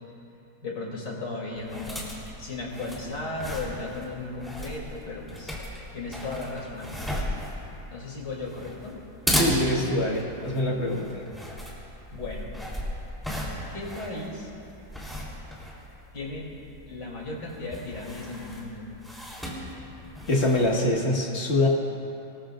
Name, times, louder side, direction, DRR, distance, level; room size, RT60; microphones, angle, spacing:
voice 1, 0.6-2.1 2.4-5.5 5.9-7.3 7.9-9.0 12.1-12.5 13.7-14.5 16.1-16.5 16.9-18.9, left 2 dB, 60° left, -3 dB, 3.8 m, -35 dB
sound 1, 1.6-20.9, left 1 dB, ahead, 3.5 m, -35 dB
voice 2, 9.3-11.2 20.3-21.7, left 1 dB, 35° left, -1 dB, 2.0 m, -24 dB
27.5 x 19.5 x 2.6 m, 2.9 s
omnidirectional pair, 2.1 m